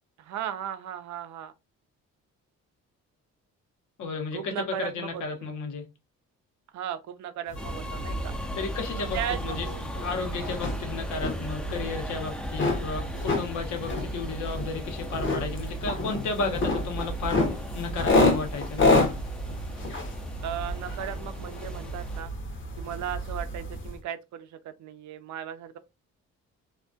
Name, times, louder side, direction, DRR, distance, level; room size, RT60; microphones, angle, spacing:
voice 1, 0.2-1.5 4.3-5.5 6.7-8.3 9.0-9.9 20.4-22.3 22.8-25.8, right 10 dB, 70° right, 0.5 m, -36 dB
voice 2, 4.0-4.5 4.8-5.8 8.5-9.7 10.0-18.8, left 4 dB, 75° left, 0.9 m, -33 dB
sound 1, 7.5-24.0, left 2 dB, 40° left, 0.7 m, -29 dB
sound 2, 7.6-22.2, left 1 dB, 5° left, 0.4 m, -39 dB
2.2 x 2.2 x 2.6 m
cardioid pair, 90°, 30 cm